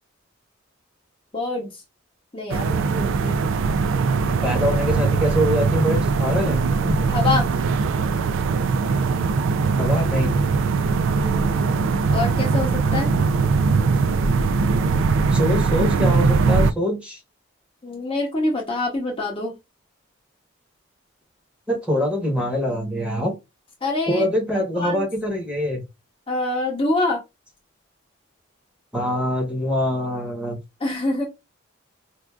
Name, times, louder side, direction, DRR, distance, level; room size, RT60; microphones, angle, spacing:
voice 1, 1.3-1.7 2.3-3.4 7.1-7.5 11.1-13.1 17.8-19.5 23.8-24.2 24.5-25.1 26.3-27.2 30.8-31.3, left 2 dB, 25° left, 0.7 m, -26 dB
sound 1, 2.5-16.7, right 4 dB, 75° right, 0.3 m, -21 dB
voice 2, 4.4-6.9 9.8-10.4 15.3-17.2 21.7-23.3 24.1-25.8 28.9-30.6, equal, 5° right, 1.0 m, -24 dB
4.5 x 2.4 x 2.3 m
head